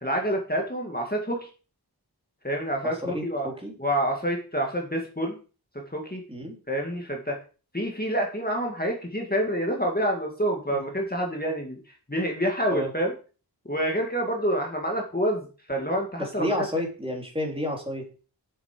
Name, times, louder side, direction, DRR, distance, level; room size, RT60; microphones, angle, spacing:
voice 1, 0.0-1.5 2.4-3.5 3.8-5.4 5.9-6.2 6.7-7.4 7.7-11.8 12.1-13.1 13.7-16.5, equal, 20° left, 1 dB, 2.0 m, -27 dB
voice 2, 2.8-3.7 6.3-6.6 10.7-10.8 12.7-12.9 16.2-18.2, left 1 dB, 15° right, 0 dB, 3.4 m, -31 dB
7.5 x 7.4 x 5.0 m, 0.36 s
wide cardioid pair, 45°, 41 cm